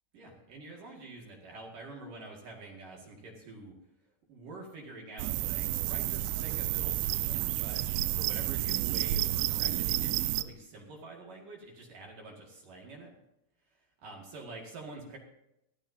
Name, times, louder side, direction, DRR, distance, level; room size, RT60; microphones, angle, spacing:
voice 1, 0.1-3.8 4.3-7.8 8.1-13.1 13.7-15.2, right 2 dB, 50° right, -1 dB, 3.1 m, -47 dB
sound 1, 5.2-10.4, right 14 dB, 85° right, 3.0 m, -30 dB
18.5 x 14.5 x 2.8 m, 0.85 s
omnidirectional pair, 5.8 m